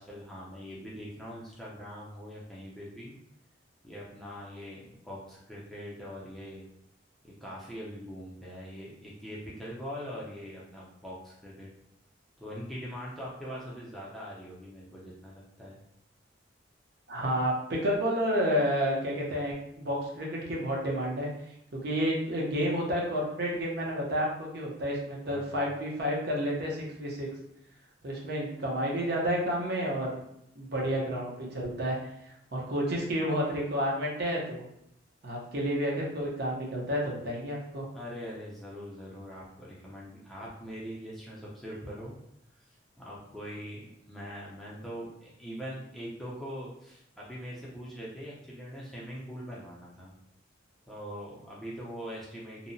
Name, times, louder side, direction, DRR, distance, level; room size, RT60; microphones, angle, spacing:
voice 1, 0.0-3.1 3.8-6.6 7.2-11.7 12.4-15.8 25.3-25.6 37.9-42.1 42.5-50.1 50.8-52.7, equal, ahead, -7 dB, 0.4 m, -42 dB
voice 2, 17.1-21.3 21.8-27.3 28.0-30.2 30.6-34.7 35.2-37.9, equal, 55° right, -2 dB, 0.6 m, -30 dB
2.7 x 2.0 x 2.6 m, 0.78 s
head